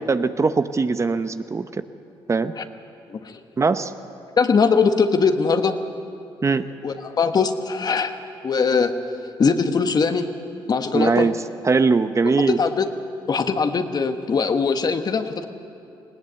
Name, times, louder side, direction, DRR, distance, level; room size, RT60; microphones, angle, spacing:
voice 1, 0.1-1.7 2.3-2.5 3.6-3.9 6.4-6.7 10.9-11.4 11.6-12.6, right 4 dB, 30° right, 11 dB, 0.8 m, -20 dB
voice 2, 3.1-3.4 4.4-5.8 6.8-8.1 8.4-8.9 9.4-10.3 10.7-11.3 12.4-12.9 13.3-15.5, left 5 dB, 45° left, 8 dB, 1.4 m, -21 dB
20.0 x 18.5 x 8.2 m, 2.7 s
supercardioid pair, 65°, 9 cm